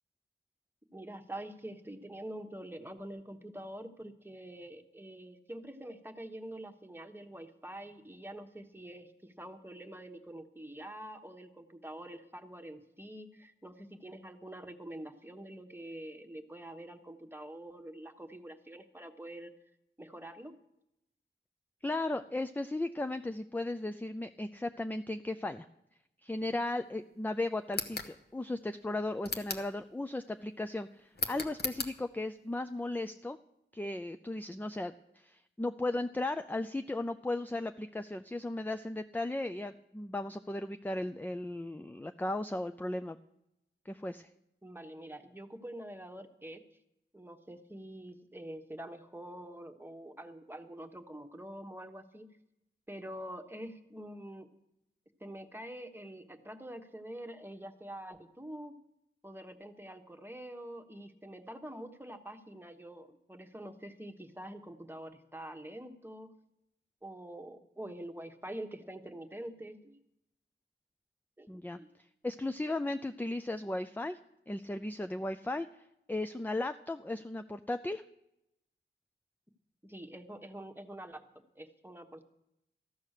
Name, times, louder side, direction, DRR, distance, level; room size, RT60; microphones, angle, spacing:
voice 1, 0.9-19.5 20.0-20.5 44.6-46.6 47.1-52.3 52.9-54.5 55.2-58.8 59.2-66.3 67.0-70.0 71.4-71.5 71.7-71.9 79.8-81.2 81.5-82.3, right 1 dB, 10° right, 6 dB, 1.2 m, -46 dB
voice 2, 21.8-25.7 26.2-33.4 33.7-43.2 43.9-44.3 71.5-71.8 72.2-74.2 74.5-75.7 76.1-78.0, left 2 dB, 10° left, 9 dB, 0.4 m, -36 dB
sound 1, 27.7-28.1 29.2-29.7 31.2-31.9, left 3 dB, 55° left, 1.2 m, -36 dB
14.5 x 9.4 x 6.6 m, 0.84 s
wide cardioid pair, 85°, 20 cm